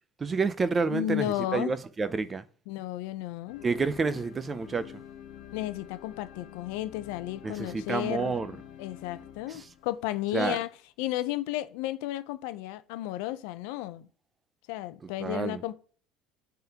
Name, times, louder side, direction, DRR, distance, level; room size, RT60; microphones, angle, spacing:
voice 1, 0.2-2.5 3.6-5.0 7.4-8.5 9.5-9.7 10.3-10.6 15.0-15.6, right 4 dB, 15° right, 0.3 m, -29 dB
voice 2, 0.9-1.7 2.7-3.6 5.5-8.3 8.8-10.7 11.0-14.1 14.7-15.7, left 15 dB, 80° left, 0.5 m, -33 dB
sound 1, 3.5-10.5, left 10 dB, 60° left, 1.0 m, -48 dB
8.9 x 3.7 x 2.8 m
cardioid pair, 170°, 0 cm